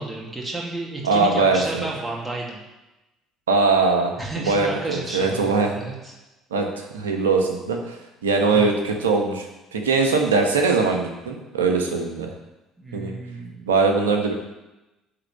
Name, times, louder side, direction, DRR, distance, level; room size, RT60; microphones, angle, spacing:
voice 1, 0.0-2.6 4.2-6.1 8.5-8.7 12.8-13.7, right 2 dB, 15° right, -2 dB, 2.5 m, -32 dB
voice 2, 1.0-1.8 3.5-5.7 6.5-7.9 8.2-9.5 9.7-12.3 12.9-13.1 13.7-14.3, right 4 dB, 80° right, 3 dB, 1.3 m, -21 dB
11.5 x 4.0 x 7.8 m, 1.0 s
figure-of-eight pair, 55°, 0 cm